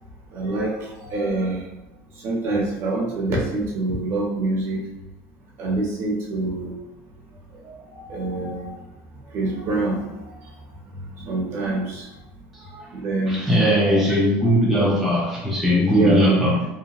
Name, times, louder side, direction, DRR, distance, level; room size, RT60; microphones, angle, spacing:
voice 1, 0.3-1.7 2.2-4.8 5.6-6.7 7.6-8.7 9.3-10.3 11.3-12.1 12.7-13.4 13.8-14.0 15.9-16.2, right 2 dB, 40° right, -2 dB, 0.7 m, -26 dB
voice 2, 13.3-16.7, equal, ahead, -7 dB, 0.4 m, -19 dB
2.8 x 2.2 x 2.4 m, 0.94 s
cardioid pair, 165°, 6 cm